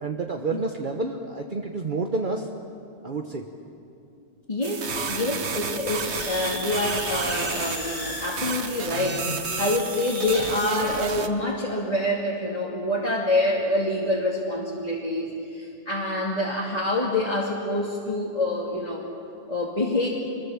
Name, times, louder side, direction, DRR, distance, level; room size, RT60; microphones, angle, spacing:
voice 1, 0.0-2.5 3.0-3.5, right 3 dB, 45° right, 2 dB, 1.3 m, -29 dB
voice 2, 4.5-19.0 19.5-20.1, left 1 dB, 35° left, -5 dB, 2.6 m, -26 dB
sound 1, 4.6-11.3, right 5 dB, 70° right, 1.4 m, -32 dB
sound 2, 5.9-10.6, left 3 dB, 85° left, 2.6 m, -37 dB
25.5 x 21.5 x 7.3 m, 2.6 s
omnidirectional pair, 1.2 m